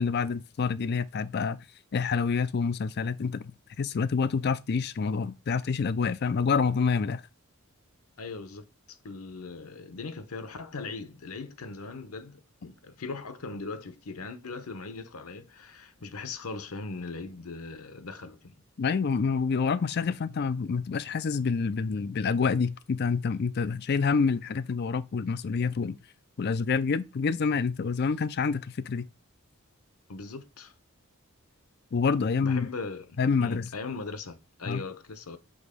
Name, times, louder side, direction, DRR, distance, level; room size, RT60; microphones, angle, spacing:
voice 1, 0.0-1.6 1.9-3.5 3.8-7.2 18.8-26.0 26.4-29.1 31.9-32.7 33.2-33.7 34.6-34.8, left 5 dB, 50° left, 0.4 m, -27 dB
voice 2, 8.2-8.6 9.0-18.6 30.1-30.7 32.4-35.4, left 3 dB, 85° left, 0.8 m, -39 dB
6.3 x 3.0 x 5.0 m
head